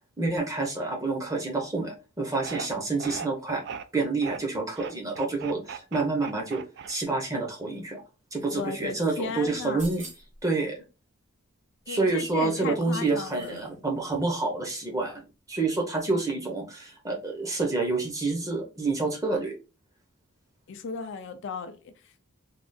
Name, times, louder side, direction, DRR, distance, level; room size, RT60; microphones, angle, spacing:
voice 1, 0.2-3.6 3.9-6.6 6.9-8.0 8.3-10.0 10.4-10.7 11.9-19.5, right 3 dB, 15° right, 0.7 m, -28 dB
sound 1, 2.4-2.7 3.0-3.8 4.2-4.4 4.7-7.3, right 6 dB, 50° right, 0.4 m, -38 dB
voice 2, 8.5-9.9 11.9-13.7 20.7-22.2, left 5 dB, 55° left, 0.4 m, -36 dB
sound 2, 9.5-10.5 12.0-13.7 14.0-14.1, right 2 dB, 35° right, 1.0 m, -47 dB
3.5 x 2.4 x 2.6 m
head